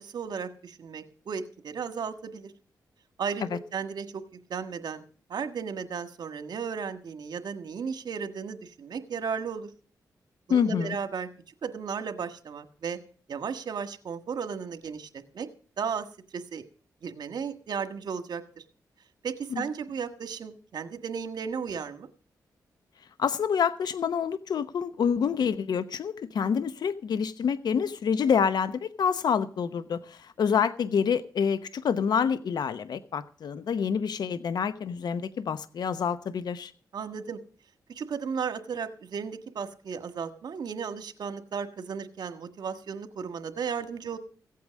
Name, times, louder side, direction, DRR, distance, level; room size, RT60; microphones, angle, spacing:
voice 1, 0.0-2.5 3.2-4.2 4.5-5.0 5.3-9.7 10.5-11.3 11.6-13.0 13.3-15.5 15.8-16.0 16.3-16.6 17.0-18.6 19.2-22.1 36.9-37.4 37.9-44.2, right 6 dB, 75° right, 1.6 m, -35 dB
voice 2, 10.5-11.0 19.5-19.6 23.2-36.7, left 7 dB, 75° left, 0.9 m, -27 dB
15.5 x 8.5 x 6.4 m
cardioid pair, 65°, 7 cm